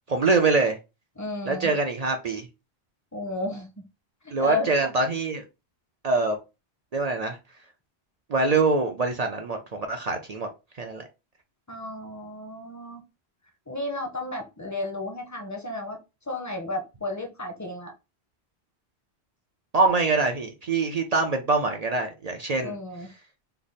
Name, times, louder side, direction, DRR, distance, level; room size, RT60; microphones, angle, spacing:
voice 1, 0.1-0.8 1.5-2.5 4.3-5.4 6.0-6.4 6.9-7.4 8.3-10.5 10.8-11.1 19.7-22.7, right 3 dB, 55° right, 0.4 m, -24 dB
voice 2, 1.2-1.7 3.1-3.8 4.2-4.9 11.7-13.0 13.7-16.0 16.3-17.9 22.6-23.1, left 2 dB, 20° left, 0.6 m, -33 dB
3.3 x 2.0 x 4.0 m
omnidirectional pair, 1.1 m